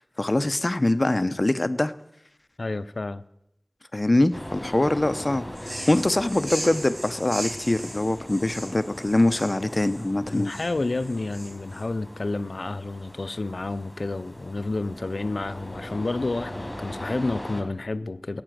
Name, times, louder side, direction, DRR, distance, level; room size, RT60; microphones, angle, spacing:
voice 1, 0.0-1.9 3.9-10.5, left 1 dB, 45° left, 0.7 m, -23 dB
voice 2, 2.6-3.2 10.3-18.4, left 2 dB, 85° left, 0.6 m, -30 dB
sound 1, 4.3-17.6, left 1 dB, 25° left, 3.5 m, -40 dB
sound 2, 5.6-11.8, right 1 dB, 65° right, 3.6 m, -38 dB
15.5 x 9.1 x 7.6 m
wide cardioid pair, 45°, 0 cm